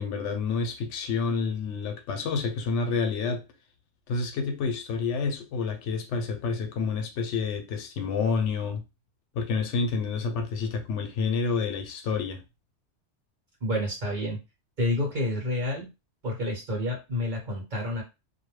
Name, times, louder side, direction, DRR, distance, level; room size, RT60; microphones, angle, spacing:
voice 1, 0.0-3.4 4.1-8.8 9.3-12.4, left 4 dB, 80° left, 0.9 m, -29 dB
voice 2, 13.6-14.4 14.8-15.9 16.2-18.0, left 1 dB, 45° right, 1.0 m, -29 dB
2.3 x 2.1 x 3.1 m
omnidirectional pair, 1.2 m